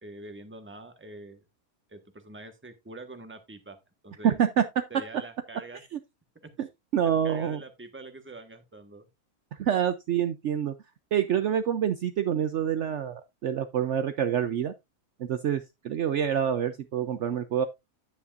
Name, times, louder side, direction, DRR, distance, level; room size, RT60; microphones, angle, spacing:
voice 1, 0.0-1.4 1.9-3.8 4.0-4.4 4.9-5.8 7.2-9.1, right 2 dB, 10° right, 1.1 m, -45 dB
voice 2, 4.2-4.7 5.9-6.0 6.6-6.7 6.9-7.6 9.5-10.7 11.1-14.7 15.2-17.7, right 9 dB, 60° right, 0.9 m, -27 dB
9.7 x 8.7 x 2.5 m
omnidirectional pair, 1.5 m